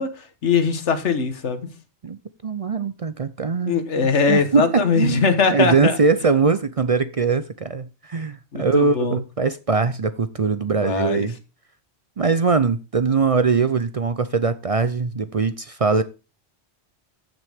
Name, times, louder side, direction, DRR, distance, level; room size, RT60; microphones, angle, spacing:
voice 1, 0.0-1.7 3.7-6.0 8.5-9.2 10.8-11.3, left 5 dB, 85° left, 1.6 m, -21 dB
voice 2, 2.0-3.8 4.2-11.3 12.2-16.0, right 4 dB, 45° right, 0.5 m, -21 dB
14.5 x 6.2 x 3.5 m
omnidirectional pair, 1.2 m